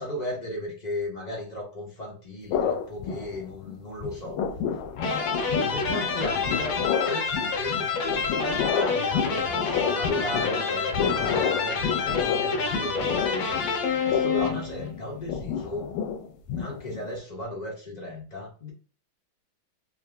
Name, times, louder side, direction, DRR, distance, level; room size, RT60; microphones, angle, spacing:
voice 1, 0.0-4.5 5.4-15.9 16.5-18.7, left 1 dB, 45° left, -2 dB, 0.5 m, -35 dB
sound 1, 2.5-3.7 4.0-17.2, left 7 dB, 85° left, 1.4 m, -30 dB
sound 2, 5.0-14.9, left 5 dB, 70° left, 1.4 m, -28 dB
3.7 x 2.7 x 3.3 m, 0.38 s
omnidirectional pair, 2.2 m